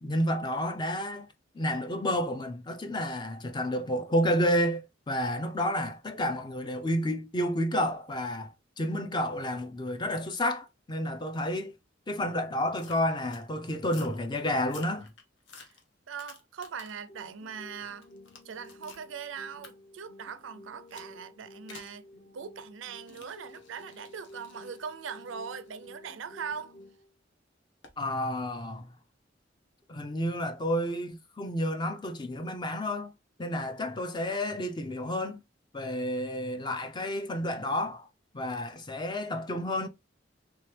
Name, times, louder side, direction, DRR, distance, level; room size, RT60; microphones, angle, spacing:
voice 1, 0.0-1.3 1.5-11.7 12.1-15.1 28.0-28.9 29.9-33.1 33.4-35.4 35.7-38.1 38.3-39.9, equal, 25° left, 0.5 m, -30 dB
sound 1, 12.8-13.5 13.8-14.2 14.6-17.1 17.5-19.1 19.6-19.7 20.9-21.1 21.7-22.0 22.9-26.8 27.8-28.0, left 5 dB, 70° left, 0.9 m, -53 dB
voice 2, 16.1-18.1 18.4-22.1 22.3-26.8, right 6 dB, 85° right, 0.5 m, -41 dB
sound 2, 17.1-27.1, left 1 dB, 55° left, 1.4 m, -52 dB
3.4 x 3.0 x 3.3 m
head